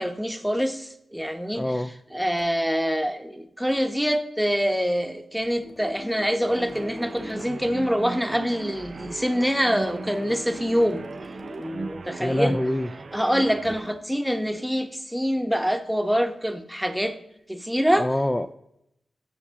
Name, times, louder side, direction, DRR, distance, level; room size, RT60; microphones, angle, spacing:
voice 1, 0.0-1.7 2.1-11.0 11.6-12.6 13.1-17.2 17.5-18.1, equal, ahead, 7 dB, 1.0 m, -25 dB
voice 2, 1.6-1.9 12.2-12.9 18.0-18.5, left 1 dB, 15° left, 8 dB, 0.4 m, -25 dB
sound 1, 2.4-2.6 3.7-3.9 5.4-7.7 9.8-11.9 13.6-13.9, left 2 dB, 35° left, 2.7 m, -44 dB
sound 2, 6.4-13.9, right 4 dB, 60° right, 0.4 m, -38 dB
15.5 x 6.7 x 3.7 m, 0.81 s
cardioid pair, 60°, 0 cm